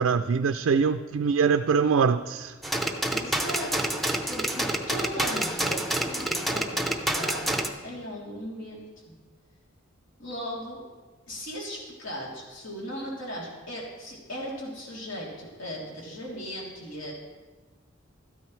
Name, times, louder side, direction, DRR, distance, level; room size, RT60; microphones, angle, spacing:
voice 1, 0.0-2.6, right 5 dB, 90° right, 9 dB, 0.4 m, -23 dB
sound 1, 2.6-7.7, right 1 dB, ahead, 0.7 m, -28 dB
voice 2, 3.1-9.1 10.2-10.8 11.3-17.1, equal, 70° left, -4 dB, 3.2 m, -38 dB
13.5 x 12.5 x 3.2 m, 1.4 s
head